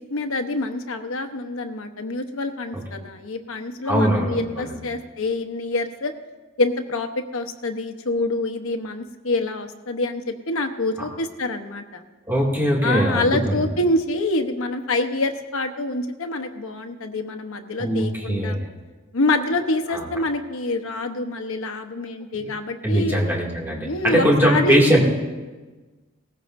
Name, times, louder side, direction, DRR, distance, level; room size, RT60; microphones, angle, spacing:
voice 1, 0.1-6.1 6.6-12.0 12.8-18.6 19.1-23.2 23.8-24.8, left 2 dB, 85° left, 6 dB, 0.9 m, -26 dB
voice 2, 3.9-4.8 12.3-13.6 17.8-18.6 19.9-20.1 22.8-25.0, equal, 10° right, -3 dB, 2.3 m, -21 dB
18.0 x 14.5 x 2.6 m, 1.3 s
head